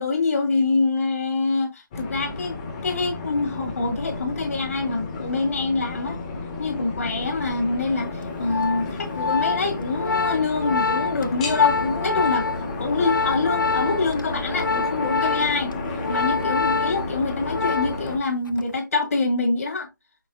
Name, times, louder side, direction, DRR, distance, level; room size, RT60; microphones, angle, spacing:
voice 1, 0.0-6.2 6.6-8.1 8.4-12.5 12.8-15.7 16.1-19.9, left 3 dB, 50° left, 1.6 m, -25 dB
sound 1, 1.9-18.2, left 3 dB, 20° left, 0.9 m, -32 dB
Organ, 8.2-18.2 18.5-18.8, left 4 dB, 90° left, 0.4 m, -26 dB
5.6 x 3.6 x 2.5 m
figure-of-eight pair, 160°, 10 cm